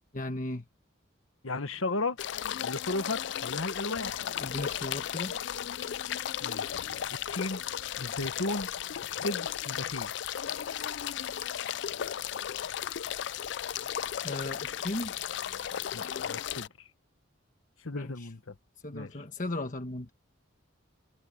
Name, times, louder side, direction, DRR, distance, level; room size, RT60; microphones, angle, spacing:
voice 1, 0.1-0.6 4.4-5.4 14.2-15.2 17.9-18.3 18.8-20.1, left 2 dB, 40° left, 1.4 m, -36 dB
voice 2, 1.4-2.2 2.6-4.2 6.4-6.8 7.3-7.6 8.0-8.7 9.0-10.1 15.9-16.9 17.8-18.5 18.9-19.1, left 2 dB, 85° left, 1.4 m, -35 dB
sound 1, 2.2-16.7, left 9 dB, 60° left, 0.3 m, -35 dB
head